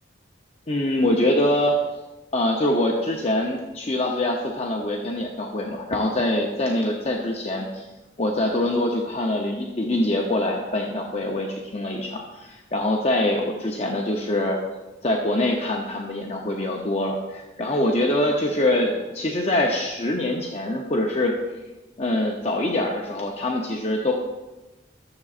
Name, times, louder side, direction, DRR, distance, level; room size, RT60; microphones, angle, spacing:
voice 1, 0.7-1.8 2.3-7.9 8.2-14.6 15.0-21.3 22.0-24.1, left 1 dB, 35° left, 0 dB, 0.6 m, -24 dB
12.5 x 7.0 x 2.4 m, 1.1 s
head